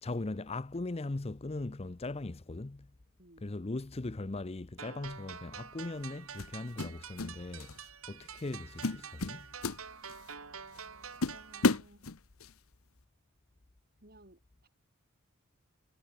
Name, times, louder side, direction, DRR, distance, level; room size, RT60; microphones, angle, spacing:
voice 1, 0.0-2.9 3.4-7.7 8.1-9.5, left 2 dB, 30° left, 0.6 m, -39 dB
sound 1, 4.8-11.8, right 6 dB, 75° right, 3.5 m, -47 dB
sound 2, 5.0-5.3 6.4-7.3 7.6-7.9 8.4-8.5 8.8-10.3 10.7-10.8 11.2-12.5, left 3 dB, 80° left, 1.0 m, -32 dB
voice 2, 11.3-12.1 14.0-14.7, right 1 dB, 45° right, 4.4 m, -58 dB
head